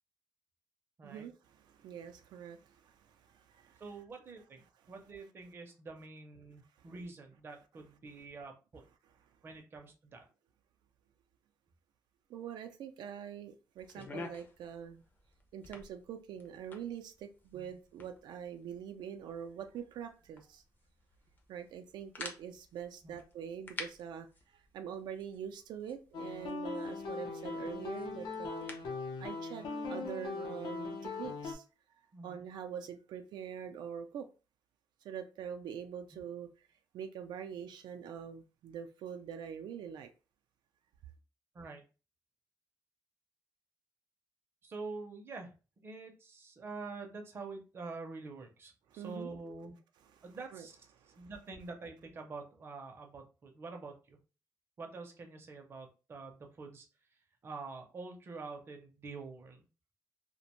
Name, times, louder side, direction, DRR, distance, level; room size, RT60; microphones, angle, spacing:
voice 1, 1.0-3.8 6.8-6.9 12.3-15.0 15.5-20.6 21.5-28.8 29.2-31.6 32.2-34.3 35.0-36.7 36.9-40.1 48.9-49.3 50.2-50.3 50.5-50.7 51.0-51.3, right 8 dB, 85° right, 0.3 m, -44 dB
voice 2, 3.8-4.6 4.9-8.8 9.4-10.2 17.5-17.7 23.0-23.2 32.1-32.4 36.1-36.2 41.5-41.8 44.6-45.5 45.8-49.7 50.2-50.8 51.2-54.2 54.8-56.9 57.4-59.7, right 3 dB, 35° right, 0.5 m, -46 dB
sound 1, 13.8-29.0, left 3 dB, 25° left, 0.4 m, -52 dB
sound 2, 26.1-31.5, left 4 dB, 85° left, 0.6 m, -40 dB
2.4 x 2.1 x 2.9 m
wide cardioid pair, 170°, 7 cm